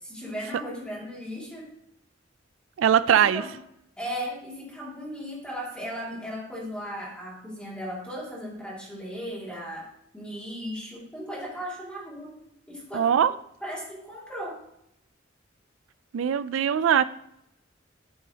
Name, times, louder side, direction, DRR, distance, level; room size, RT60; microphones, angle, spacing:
voice 1, 0.0-1.7 3.1-3.6 4.0-12.4 12.7-13.1 13.6-14.6, equal, 5° left, -3 dB, 2.3 m, -36 dB
voice 2, 2.8-3.4 12.9-13.3 16.1-17.0, right 9 dB, 85° right, 14 dB, 0.3 m, -21 dB
9.2 x 8.6 x 2.8 m, 0.77 s
head